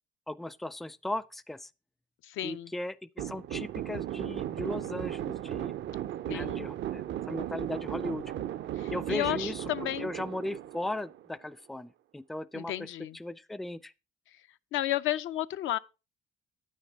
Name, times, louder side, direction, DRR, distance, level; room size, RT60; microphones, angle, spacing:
voice 1, 0.3-1.7 2.4-5.7 6.3-8.3 8.9-9.6 10.0-12.9 13.1-13.9, left 1 dB, ahead, 0.4 m, -37 dB
voice 2, 2.3-2.7 6.3-6.6 8.8-10.1 12.5-13.2 14.7-15.8, left 14 dB, 80° left, 0.5 m, -32 dB
sound 1, 3.2-11.5, right 12 dB, 65° right, 0.5 m, -36 dB
9.0 x 6.5 x 4.5 m
cardioid pair, 90°, 20 cm